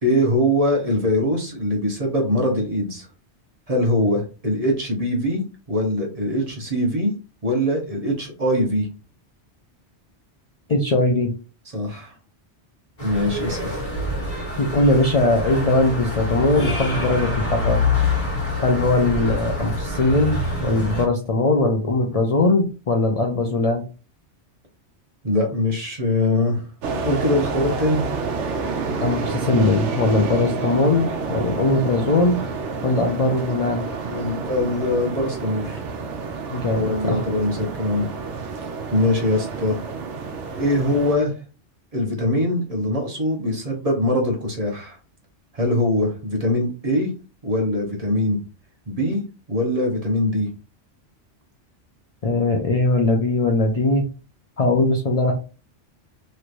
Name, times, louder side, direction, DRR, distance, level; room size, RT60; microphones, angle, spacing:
voice 1, 0.0-3.1 3.7-5.4 5.7-7.1 7.4-8.9 11.7-12.1 13.0-13.9 25.2-26.7 27.0-28.0 34.0-35.8 36.7-38.1 38.9-39.8 40.6-41.3 41.9-45.0 45.5-47.1 47.4-48.4 48.9-49.2 49.5-50.5, left 1 dB, 35° right, 0 dB, 1.0 m, -22 dB
voice 2, 10.7-11.3 14.6-17.8 18.6-23.8 29.0-32.4 32.8-33.9 36.5-37.2 52.2-54.0 54.6-55.3, left 2 dB, 45° left, 1 dB, 0.5 m, -20 dB
sound 1, 13.0-21.0, left 3 dB, 30° left, 1.6 m, -26 dB
sound 2, 26.8-41.1, right 4 dB, 90° right, 1.0 m, -29 dB
3.2 x 3.0 x 2.5 m, 0.33 s
omnidirectional pair, 1.2 m